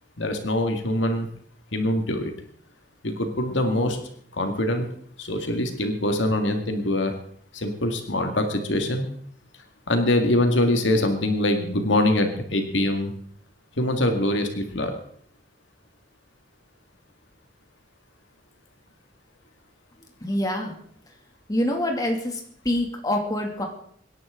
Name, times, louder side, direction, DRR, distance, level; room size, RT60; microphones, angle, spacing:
voice 1, 0.2-1.3 1.7-2.3 3.0-4.0 4.3-4.9 5.2-7.1 7.5-9.1 9.9-13.1 13.8-14.9, left 1 dB, 75° left, 5 dB, 2.0 m, -23 dB
voice 2, 20.2-20.7 21.5-22.4 22.6-23.7, left 1 dB, 20° left, 2 dB, 2.4 m, -25 dB
25.0 x 10.5 x 3.8 m, 0.62 s
head